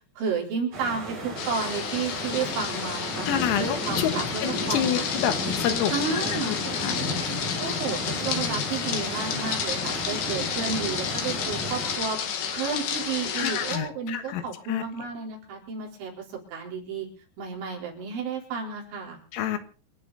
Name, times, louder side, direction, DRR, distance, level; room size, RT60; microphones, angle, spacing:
voice 1, 0.2-3.3 3.5-5.0 5.9-6.6 7.6-12.2 12.5-17.1 17.4-19.2, right 5 dB, 65° right, -1 dB, 6.3 m, -32 dB
sound 1, 0.7-12.0, equal, 35° right, 6.1 m, -33 dB
sound 2, 1.4-13.8, left 7 dB, 60° left, 3.9 m, -31 dB
voice 2, 3.3-4.1 4.4-5.9 6.3-6.6 6.8-7.0 13.4-14.4 14.7-14.8 19.3-19.6, left 10 dB, 85° left, 9 dB, 4.1 m, -28 dB
27.0 x 10.0 x 4.1 m, 0.38 s
omnidirectional pair, 5.9 m